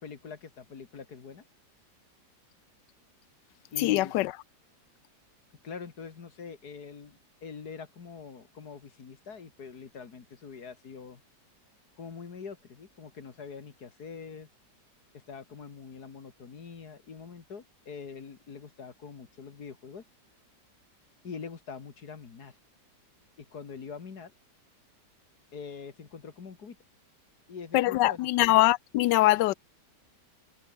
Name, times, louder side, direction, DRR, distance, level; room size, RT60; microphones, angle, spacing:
voice 1, 0.0-1.4 3.7-4.2 5.6-11.2 12.0-14.5 15.1-20.0 21.2-22.6 23.4-24.3 25.5-26.8 27.5-28.3, left 5 dB, 65° left, 2.5 m, -44 dB
voice 2, 3.8-4.3 27.7-29.5, left 17 dB, 85° left, 1.2 m, -23 dB
omnidirectional pair, 1.9 m